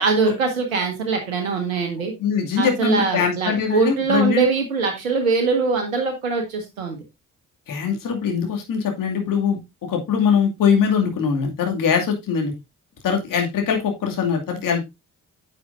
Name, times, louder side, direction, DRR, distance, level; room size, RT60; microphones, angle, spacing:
voice 1, 0.0-2.1 2.6-7.0, right 4 dB, 75° right, 4 dB, 1.7 m, -22 dB
voice 2, 2.2-4.4 7.7-9.6 9.9-12.5 13.0-14.8, left 6 dB, 50° left, 3 dB, 2.5 m, -22 dB
9.5 x 7.5 x 2.6 m, 0.22 s
figure-of-eight pair, 40°, 41 cm